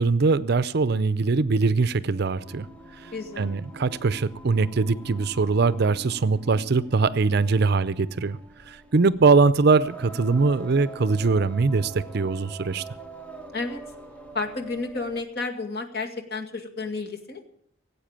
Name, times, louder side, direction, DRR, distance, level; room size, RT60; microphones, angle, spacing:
voice 1, 0.0-2.7 3.0-3.1 3.4-8.4 8.7-12.8, right 4 dB, 55° right, 17 dB, 0.5 m, -22 dB
Singing, 2.1-15.3, right 2 dB, 5° left, 1.3 m, -44 dB
voice 2, 3.1-3.6 13.5-13.8 14.3-17.5, left 3 dB, 55° left, 4 dB, 2.1 m, -31 dB
17.5 x 8.4 x 8.8 m, 0.67 s
head